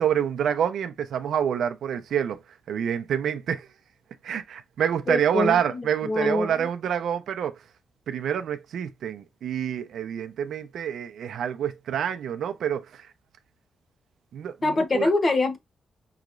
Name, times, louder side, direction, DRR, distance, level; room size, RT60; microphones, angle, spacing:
voice 1, 0.0-2.4 2.7-3.7 4.2-7.6 8.1-13.1 14.3-15.1, right 9 dB, 75° right, 0.7 m, -27 dB
voice 2, 5.1-6.7 14.6-15.6, left 2 dB, 25° left, 0.9 m, -25 dB
5.8 x 3.1 x 2.5 m
wide cardioid pair, 160°, 0 cm